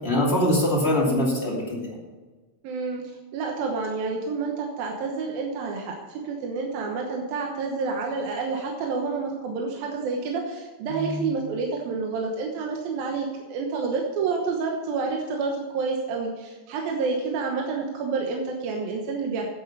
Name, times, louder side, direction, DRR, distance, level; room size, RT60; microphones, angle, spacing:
voice 1, 0.0-1.9 10.9-11.2, left 1 dB, 20° left, -4 dB, 2.3 m, -23 dB
voice 2, 2.6-3.0 3.3-19.5, right 4 dB, 70° right, 0 dB, 2.8 m, -29 dB
9.5 x 8.2 x 6.6 m, 1.3 s
omnidirectional pair, 4.5 m